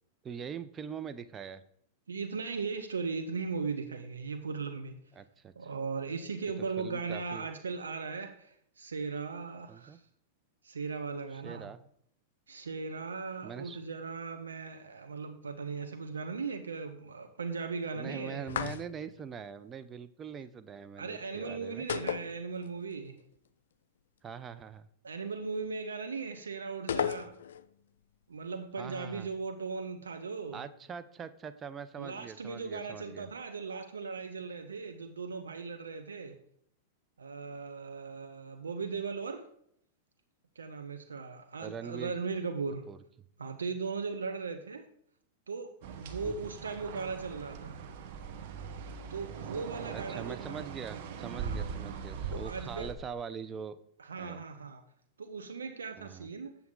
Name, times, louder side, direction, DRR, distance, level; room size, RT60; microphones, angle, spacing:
voice 1, 0.2-1.6 5.2-5.5 6.8-7.5 9.7-10.0 11.3-11.8 13.4-13.8 17.9-21.9 24.2-24.9 28.8-29.3 30.5-33.3 41.6-42.2 42.9-43.0 46.2-46.3 49.9-53.8 54.2-54.4 56.0-56.3, right 7 dB, 25° right, 0.5 m, -43 dB
voice 2, 2.1-5.0 5.6-10.0 10.6-11.7 12.5-18.5 21.0-23.2 25.0-27.3 28.3-30.7 32.0-36.4 37.2-39.5 40.6-42.9 43.4-44.9 45.5-47.8 49.1-50.6 51.4-51.7 52.3-52.9 54.0-54.8 55.2-56.5, right 4 dB, 90° right, 0.6 m, -38 dB
sound 1, 18.5-19.2 21.9-22.9 23.2-23.3 26.9-27.7, left 9 dB, 75° left, 0.4 m, -34 dB
sound 2, 45.8-52.9, right 6 dB, 60° right, 1.0 m, -41 dB
7.9 x 7.0 x 3.7 m
hypercardioid pair, 105°, 0 cm